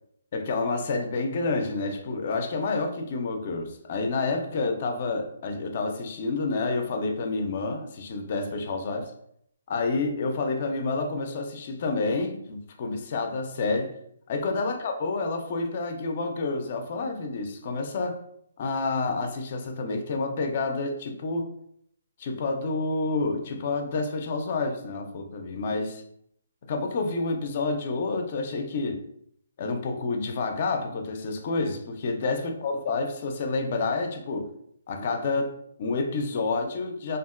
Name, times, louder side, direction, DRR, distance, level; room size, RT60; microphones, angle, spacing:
voice 1, 0.3-9.1 9.7-13.9 14.3-18.2 18.6-21.5 22.2-26.0 26.7-29.0 29.6-34.5 34.9-37.2, left 3 dB, 40° left, 4 dB, 0.4 m, -29 dB
2.8 x 2.4 x 2.3 m, 0.72 s
hypercardioid pair, 160°, 0 cm